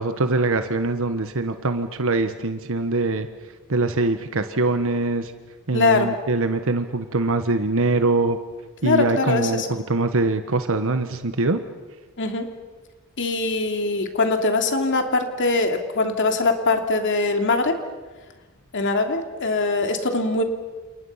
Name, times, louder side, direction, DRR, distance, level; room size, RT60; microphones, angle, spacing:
voice 1, 0.0-3.3 3.7-5.3 5.7-8.4 8.8-11.6, right 2 dB, 65° right, 8 dB, 1.2 m, -23 dB
voice 2, 5.7-6.1 8.8-9.7 12.2-12.5 13.2-17.8 18.7-20.4, left 3 dB, 55° left, 5 dB, 2.8 m, -22 dB
29.5 x 28.5 x 5.7 m, 1.3 s
head